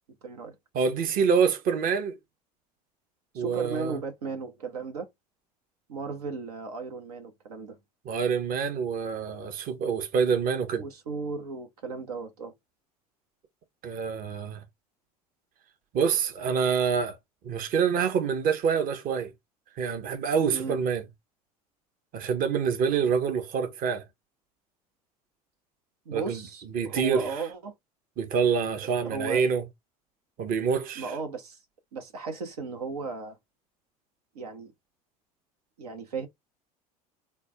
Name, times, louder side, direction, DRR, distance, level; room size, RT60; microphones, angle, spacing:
voice 1, 0.2-0.6 3.3-5.1 5.9-7.8 10.7-12.5 20.5-20.8 26.1-27.7 28.8-29.4 31.0-31.6 31.9-33.4 34.3-34.7 35.8-36.3, right 4 dB, 80° right, 0.8 m, -35 dB
voice 2, 0.7-2.2 3.3-4.0 8.0-10.8 13.8-14.6 15.9-17.2 17.4-19.3 19.8-21.0 22.1-24.0 26.1-26.4 26.7-27.3 28.2-29.6 30.4-31.1, right 6 dB, 45° right, 0.9 m, -26 dB
3.2 x 2.2 x 3.4 m
hypercardioid pair, 75°, 19 cm